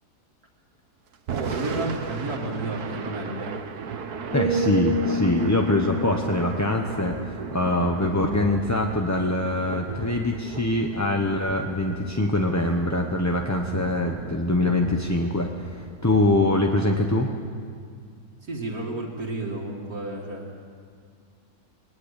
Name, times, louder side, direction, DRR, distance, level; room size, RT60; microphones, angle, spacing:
Thunder / Rain, 1.1-17.4, right 6 dB, 90° right, 1.7 m, -36 dB
voice 1, 1.3-3.5 18.4-20.6, right 2 dB, 75° right, -2 dB, 2.6 m, -31 dB
sound 1, 4.3-8.3 8.7-9.0, equal, 85° left, 6.1 m, -29 dB
voice 2, 4.3-17.3, left 2 dB, 15° left, 2 dB, 0.8 m, -24 dB
21.0 x 19.0 x 8.3 m, 2.2 s
omnidirectional pair, 1.6 m